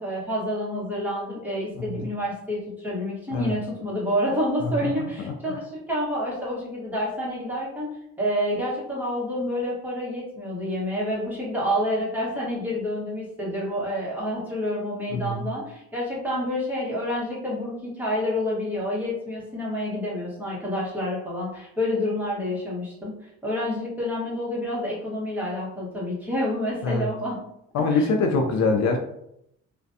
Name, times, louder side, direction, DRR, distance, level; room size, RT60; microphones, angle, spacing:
voice 1, 0.0-7.9 8.2-23.1 23.4-27.4 27.9-28.1, left 1 dB, 5° right, -6 dB, 1.1 m, -28 dB
voice 2, 4.6-5.1 5.5-5.6 15.1-15.5 26.8-27.1 27.7-29.0, left 3 dB, 65° left, 3 dB, 0.5 m, -24 dB
2.4 x 2.2 x 2.6 m, 0.77 s
cardioid pair, 90°, 30 cm